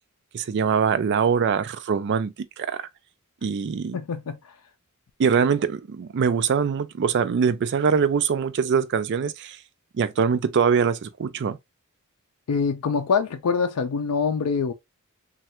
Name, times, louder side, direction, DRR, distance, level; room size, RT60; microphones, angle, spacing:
voice 1, 0.3-2.9 3.4-4.0 5.2-9.6 9.9-11.6, right 6 dB, 50° right, 0.3 m, -23 dB
voice 2, 3.9-4.4 12.5-14.7, left 5 dB, 85° left, 0.4 m, -24 dB
3.2 x 2.3 x 2.8 m
head